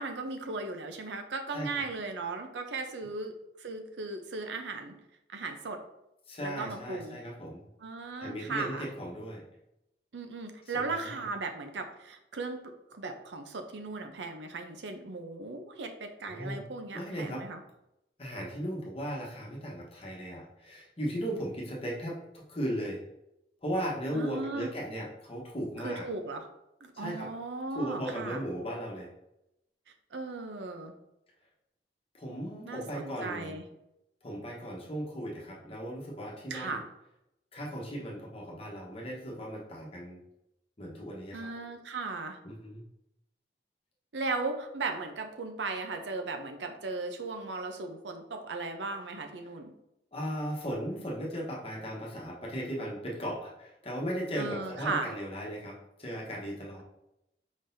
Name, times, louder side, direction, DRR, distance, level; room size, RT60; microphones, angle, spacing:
voice 1, 0.0-5.0 5.3-5.8 6.4-7.2 7.8-8.9 10.1-17.6 24.1-24.7 25.8-26.5 26.8-28.4 30.1-30.9 32.6-33.6 36.5-36.8 41.3-42.4 44.1-49.7 54.4-55.1, right 3 dB, 80° right, 6 dB, 0.6 m, -37 dB
voice 2, 1.5-1.8 6.3-7.6 8.2-9.4 10.7-11.2 16.3-16.6 16.9-17.4 18.2-23.0 23.6-26.1 26.9-27.3 27.7-29.1 32.1-33.6 34.2-36.8 37.5-40.2 40.8-41.6 42.4-42.8 50.1-56.8, equal, 35° left, -3 dB, 1.1 m, -37 dB
5.1 x 3.8 x 2.7 m, 0.85 s
head